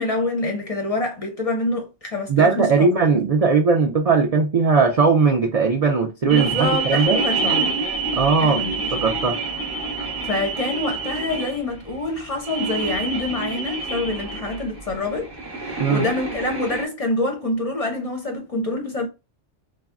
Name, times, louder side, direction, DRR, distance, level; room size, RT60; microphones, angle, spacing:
voice 1, 0.0-2.9 3.1-3.3 6.3-7.8 8.4-9.2 10.2-15.3 15.6-19.1, left 2 dB, 40° left, 0.5 m, -26 dB
voice 2, 2.3-7.2 8.1-8.6 8.9-9.4 15.8-16.0, right 4 dB, 65° right, 0.3 m, -18 dB
sound 1, 6.3-16.8, right 4 dB, 25° right, 0.7 m, -27 dB
3.3 x 2.1 x 2.4 m
omnidirectional pair, 1.2 m